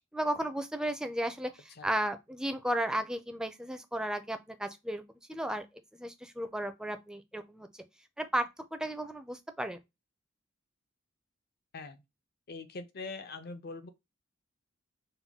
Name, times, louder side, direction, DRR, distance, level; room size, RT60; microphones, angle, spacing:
voice 1, 0.1-5.0 5.3-5.7 5.9-7.7 8.2-9.8, right 1 dB, 5° right, 0.4 m, -34 dB
voice 2, 12.5-13.9, left 3 dB, 50° left, 0.6 m, -42 dB
5.5 x 2.2 x 3.5 m
head